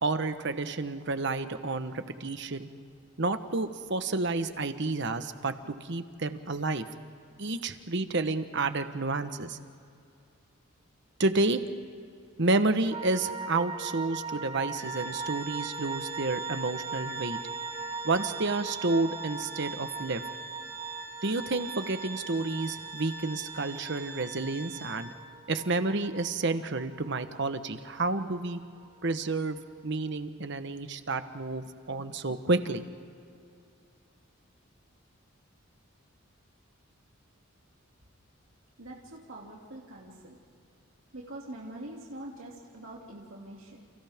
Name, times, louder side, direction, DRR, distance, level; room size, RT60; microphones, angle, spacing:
voice 1, 0.0-2.7 3.2-6.9 7.4-9.6 11.2-11.6 12.4-17.4 18.0-20.2 21.2-25.1 25.5-28.6 29.0-29.6 29.8-32.8, right 3 dB, 55° right, 9 dB, 1.1 m, -30 dB
sound 1, 12.9-29.3 29.5-29.6, right 4 dB, 25° right, 0.7 m, -40 dB
Organ, 14.8-25.4, right 3 dB, 15° left, 1.4 m, -43 dB
voice 2, 38.8-40.4 41.1-43.8, right 1 dB, 70° right, -3 dB, 2.7 m, -44 dB
30.0 x 30.0 x 3.6 m, 2.4 s
head